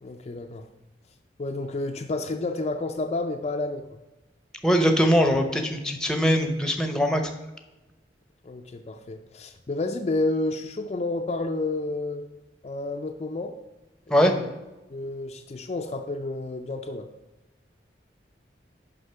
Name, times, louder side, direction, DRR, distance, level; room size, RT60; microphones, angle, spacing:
voice 1, 0.0-0.7 1.4-4.0 8.4-12.3 12.6-13.5 14.1-14.5 14.9-17.1, left 2 dB, 35° left, 4 dB, 0.4 m, -30 dB
voice 2, 4.6-7.2 14.1-14.3, equal, 5° left, 5 dB, 0.7 m, -21 dB
6.5 x 5.5 x 5.6 m, 1.1 s
head